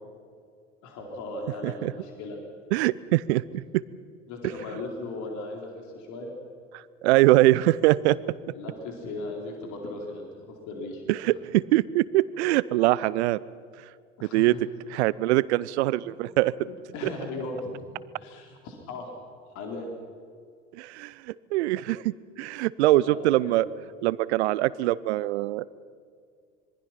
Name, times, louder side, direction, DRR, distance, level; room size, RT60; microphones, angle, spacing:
voice 1, 0.8-2.4 4.3-6.3 8.5-11.4 14.2-14.6 16.0-16.1 16.6-19.1 19.5-19.9 23.0-23.6, left 2 dB, 45° left, 1 dB, 4.1 m, -37 dB
voice 2, 2.7-3.4 7.0-8.2 11.1-13.4 14.3-14.5 14.9-16.7 20.8-23.7 24.0-25.6, right 17 dB, 55° right, 21 dB, 0.7 m, -23 dB
26.0 x 23.0 x 5.9 m, 2.2 s
figure-of-eight pair, 70°, 39 cm